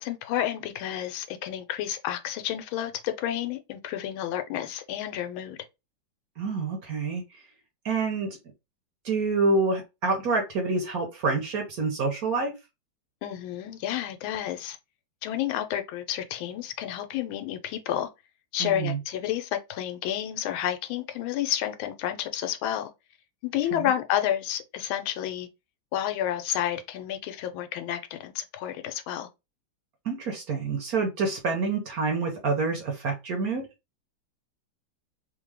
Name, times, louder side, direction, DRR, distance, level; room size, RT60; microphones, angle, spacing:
voice 1, 0.0-5.6 13.2-14.8 15.2-18.1 18.5-22.9 23.4-25.5 25.9-29.3, left 11 dB, 85° left, 1.4 m, -30 dB
voice 2, 6.4-7.2 7.8-8.4 9.0-12.5 18.6-19.0 23.7-23.9 30.0-33.6, right 3 dB, 55° right, 1.2 m, -27 dB
3.6 x 2.2 x 3.3 m
omnidirectional pair, 2.2 m